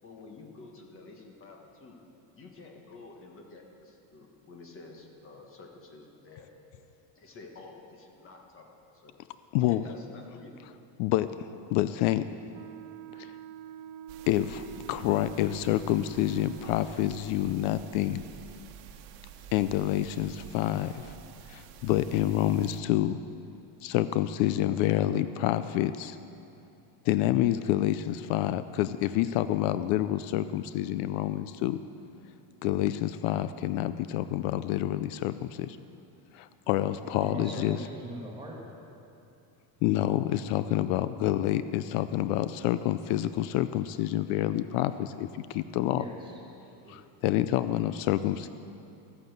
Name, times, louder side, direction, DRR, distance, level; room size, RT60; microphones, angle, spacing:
voice 1, 0.0-2.0 2.4-6.5 7.1-8.7 8.9-9.2 9.7-10.7, left 3 dB, 25° left, 2 dB, 1.4 m, -49 dB
voice 2, 9.5-9.8 11.0-11.3 11.7-12.2 13.2-13.3 14.3-18.2 19.5-21.1 21.5-23.2 23.8-26.2 27.0-31.8 32.6-35.8 36.3-37.8 39.8-46.0 46.9-48.5, left 13 dB, 70° left, 13 dB, 0.5 m, -28 dB
Wind instrument woodwind instrument, 12.5-17.4, right 10 dB, 80° right, 0.7 m, -45 dB
sound 1, 14.1-22.8, right 8 dB, 65° right, 1.2 m, -49 dB
voice 3, 37.2-38.6 45.9-46.3 46.8-47.0 47.4-47.5, right 1 dB, 10° right, -3 dB, 1.9 m, -40 dB
14.0 x 9.1 x 8.0 m, 2.7 s
cardioid pair, 175°, 49 cm